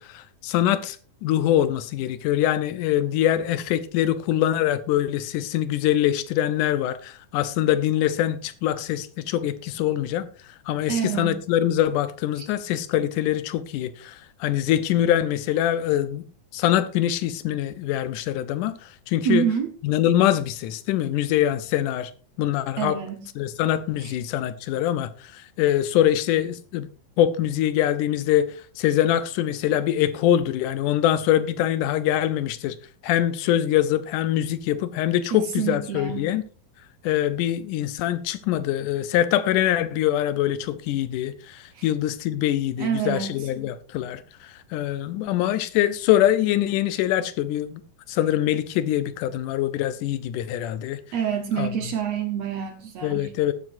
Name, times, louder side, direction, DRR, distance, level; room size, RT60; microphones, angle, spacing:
voice 1, 0.0-10.3 10.7-16.2 16.5-19.5 19.8-22.1 22.4-23.0 23.4-26.9 27.2-32.8 33.0-36.4 37.0-47.8 48.1-51.0 51.6-51.7 53.0-53.5, left 12 dB, 75° left, 1.9 m, -24 dB
voice 2, 10.9-11.4 12.4-12.5 19.2-19.7 22.8-23.2 24.0-24.1 35.3-36.3 41.7-41.9 42.8-43.3 51.1-53.3, right 8 dB, 70° right, 1.6 m, -27 dB
18.0 x 9.2 x 2.6 m
omnidirectional pair, 4.4 m